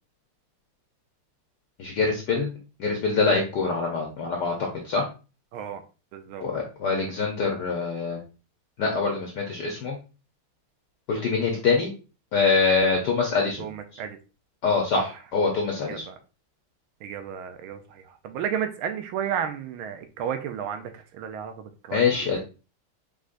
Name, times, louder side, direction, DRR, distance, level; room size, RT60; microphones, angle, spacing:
voice 1, 1.8-2.5 2.8-4.5 4.8-5.0 6.4-8.2 8.8-10.0 11.1-11.9 12.3-13.7 14.6-16.0 21.9-22.4, left 4 dB, 60° left, 0 dB, 1.2 m, -24 dB
voice 2, 6.1-6.4 13.6-14.2 14.9-15.0 15.7-16.1 17.0-22.3, right 8 dB, 75° right, 8 dB, 1.4 m, -33 dB
5.2 x 3.7 x 2.5 m, 0.32 s
omnidirectional pair, 2.4 m